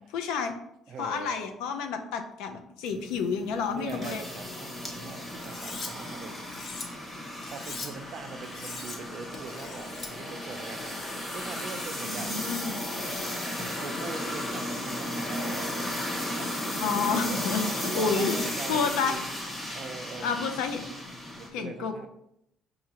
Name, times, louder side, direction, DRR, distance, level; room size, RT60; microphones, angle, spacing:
voice 1, 0.1-0.5 1.0-4.2 12.0-12.8 16.8-18.4 18.7-19.1 20.2-20.8 21.5-21.9, left 5 dB, 90° left, 6 dB, 0.5 m, -30 dB
voice 2, 0.9-1.3 3.6-6.3 7.5-12.3 13.6-15.8 16.1-17.4 17.8-19.2 19.7-20.5 21.4-22.1, right 5 dB, 55° right, 7 dB, 0.5 m, -42 dB
sound 1, 2.9-21.5, left 1 dB, 20° left, 1.2 m, -35 dB
Cutlery silverware, 5.4-5.9 6.3-6.8 7.4-7.9 8.4-9.0 9.3-10.1, left 4 dB, 40° left, 0.7 m, -40 dB
4.9 x 2.7 x 2.8 m, 0.79 s
cardioid pair, 100°, 0 cm